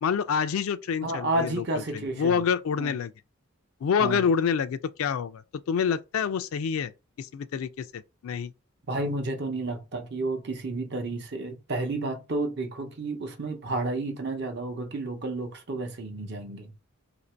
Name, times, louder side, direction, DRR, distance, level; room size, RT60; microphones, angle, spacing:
voice 1, 0.0-1.6 1.9-3.1 3.8-5.4 5.7-6.9 7.2-8.5, left 6 dB, 75° left, 0.3 m, -27 dB
voice 2, 1.0-2.4 2.8-3.0 4.0-4.3 8.9-16.7, right 2 dB, 50° right, 0.7 m, -31 dB
2.8 x 2.5 x 4.3 m
head